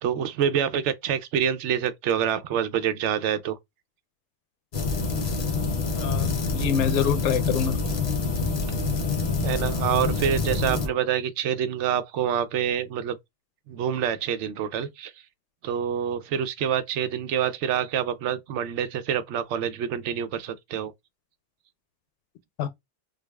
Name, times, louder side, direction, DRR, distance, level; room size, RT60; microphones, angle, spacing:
voice 1, 0.0-3.6 8.7-8.8 9.4-13.2 13.7-15.1 15.6-20.9, right 9 dB, 85° right, 0.9 m, -26 dB
sound 1, 4.7-10.9, left 4 dB, 45° left, 0.7 m, -26 dB
voice 2, 6.0-7.8 22.6-22.7, left 7 dB, 90° left, 0.9 m, -26 dB
4.7 x 2.4 x 2.2 m
omnidirectional pair, 1.2 m